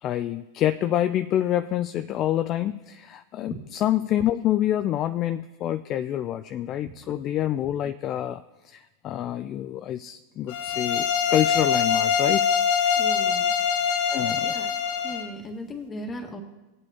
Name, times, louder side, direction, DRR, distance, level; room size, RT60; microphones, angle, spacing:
voice 1, 0.0-12.5 12.8-12.9 14.1-14.5, left 12 dB, 40° left, 11 dB, 0.4 m, -27 dB
sound 1, 10.5-15.3, left 7 dB, 60° left, 1.0 m, -24 dB
voice 2, 13.0-13.5 14.4-14.7 15.0-16.4, left 1 dB, 20° left, 4 dB, 1.6 m, -37 dB
17.5 x 8.2 x 2.9 m, 1.1 s
hypercardioid pair, 95°, 0 cm